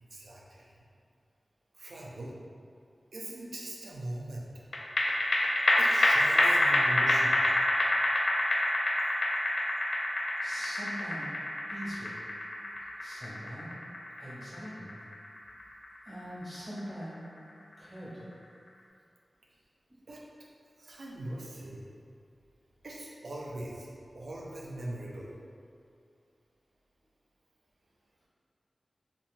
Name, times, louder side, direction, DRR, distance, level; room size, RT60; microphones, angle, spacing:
voice 1, 0.1-0.6 1.8-2.3 3.1-4.5 5.8-7.4 20.1-20.2 20.8-21.8 22.8-23.9 24.1-25.3, right 1 dB, 80° right, -4 dB, 0.4 m, -40 dB
sound 1, 4.7-17.4 17.7-17.8, left 1 dB, 75° left, 0.3 m, -28 dB
voice 2, 10.4-11.3 11.7-12.2 13.0-13.7 14.2-14.9 16.0-17.2 17.8-18.3 19.9-20.0, equal, 20° right, -11 dB, 1.4 m, -42 dB
2.9 x 2.8 x 2.5 m, 2.4 s
wide cardioid pair, 65°, 0 cm